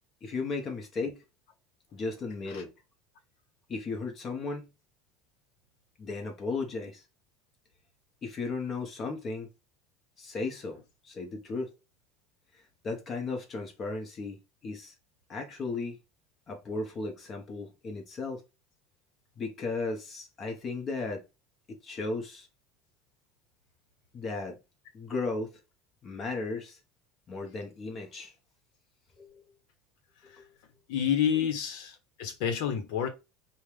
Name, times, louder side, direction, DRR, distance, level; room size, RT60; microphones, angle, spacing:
voice 1, 0.2-1.2 1.9-2.7 3.7-4.7 6.0-7.0 8.2-9.5 10.2-10.8 11.0-11.7 12.5-14.9 15.3-16.0 16.5-18.4 19.4-21.2 21.7-22.5 24.1-24.6 24.9-25.6 26.0-26.8 27.3-28.3 29.2-29.4 30.2-30.5, left 3 dB, 30° left, 1.3 m, -35 dB
voice 2, 30.9-33.1, left 8 dB, 70° left, 1.2 m, -29 dB
5.1 x 2.5 x 3.4 m
supercardioid pair, 130°, 0 cm